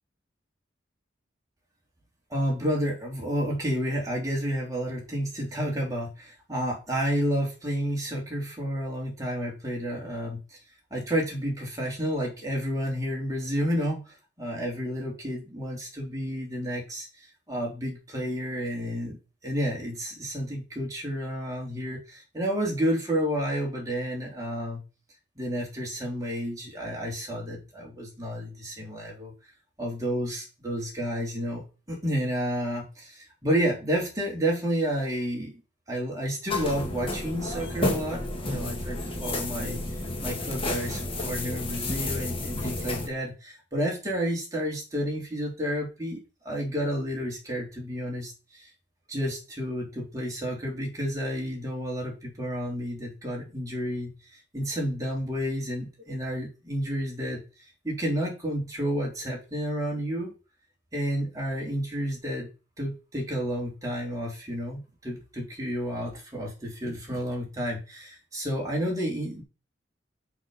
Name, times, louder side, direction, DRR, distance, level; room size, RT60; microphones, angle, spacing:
voice 1, 2.3-10.6 10.9-17.1 17.5-19.2 19.4-24.8 25.4-29.3 29.8-35.6 35.9-39.8 40.2-46.2 46.4-48.6 49.1-57.4 57.8-60.3 60.9-62.5 62.8-69.4, equal, 20° right, -2 dB, 3.2 m, -30 dB
sound 1, 36.5-43.1, left 2 dB, 30° left, 1.7 m, -31 dB
6.3 x 6.0 x 5.6 m, 0.31 s
head